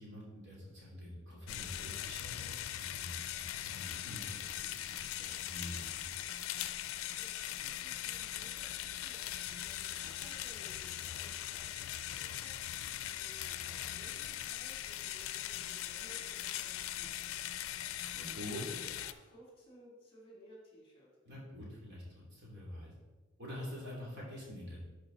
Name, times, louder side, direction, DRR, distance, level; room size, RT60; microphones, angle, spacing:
voice 1, 0.0-6.3 18.1-18.6 21.2-22.0 22.3-22.9 23.4-24.8, equal, 60° right, -4 dB, 2.8 m, -46 dB
sound 1, 1.5-19.1, left 12 dB, 85° left, 0.4 m, -40 dB
voice 2, 7.0-17.4 18.0-18.3 18.6-21.1 24.0-24.1, equal, 25° left, -3 dB, 2.8 m, -59 dB
11.5 x 4.9 x 3.9 m, 1.2 s
head